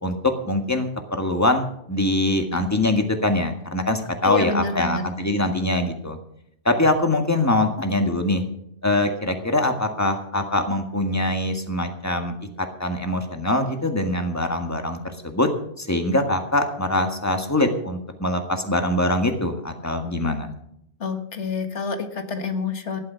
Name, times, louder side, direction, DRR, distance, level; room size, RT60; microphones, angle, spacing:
voice 1, 0.0-6.2 6.7-8.4 8.8-15.5 15.8-20.5, left 1 dB, 15° left, 5 dB, 1.8 m, -23 dB
voice 2, 4.2-5.0 21.0-23.0, left 4 dB, 80° left, 7 dB, 1.9 m, -27 dB
15.5 x 11.5 x 5.8 m, 0.72 s
omnidirectional pair, 1.2 m